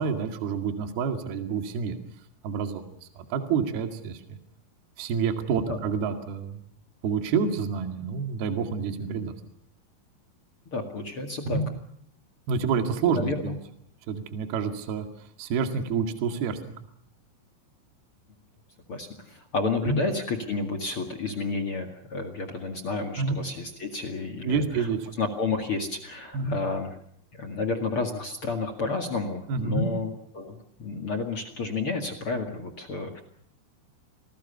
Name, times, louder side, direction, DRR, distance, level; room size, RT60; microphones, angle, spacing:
voice 1, 0.0-2.0 2.4-2.8 3.2-4.4 5.0-6.6 7.0-9.3 11.5-11.7 12.5-13.6 14.1-15.1 15.4-16.7 19.9-20.0 23.2-23.3 24.4-25.1 26.3-26.6 29.5-29.9, right 5 dB, 55° right, 6 dB, 3.7 m, -28 dB
voice 2, 10.7-11.6 13.1-13.5 18.9-24.9 25.2-27.0 27.3-33.2, left 3 dB, 55° left, 5 dB, 1.4 m, -31 dB
28.0 x 19.5 x 6.9 m, 0.68 s
omnidirectional pair, 5.8 m